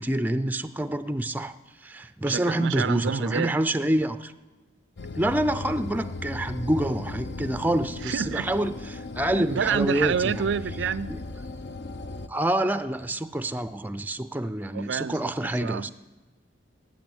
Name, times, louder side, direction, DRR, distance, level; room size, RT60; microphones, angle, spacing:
voice 1, 0.0-1.5 1.8-4.3 5.2-10.3 11.1-11.2 12.3-15.9, right 1 dB, 10° right, 0.4 m, -27 dB
voice 2, 2.3-3.5 8.0-8.5 9.3-11.2 14.7-15.9, right 7 dB, 75° right, 0.4 m, -28 dB
sound 1, 5.0-12.3, left 3 dB, 65° left, 0.6 m, -37 dB
14.0 x 8.8 x 8.9 m
head